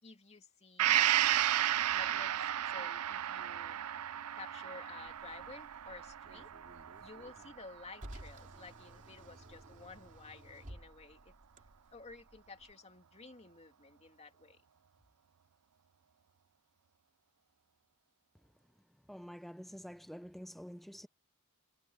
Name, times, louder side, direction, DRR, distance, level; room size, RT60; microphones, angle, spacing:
voice 1, 0.0-1.1 1.9-2.4 2.7-3.8 4.3-6.5 7.0-11.3 11.9-14.6, left 3 dB, 30° left, 2.7 m, -53 dB
Gong, 0.8-8.4 8.8-8.9, right 12 dB, 85° right, 0.5 m, -33 dB
Car, 5.0-12.7, right 1 dB, 35° right, 2.9 m, -55 dB
voice 2, 19.1-21.1, equal, ahead, 0.5 m, -48 dB
head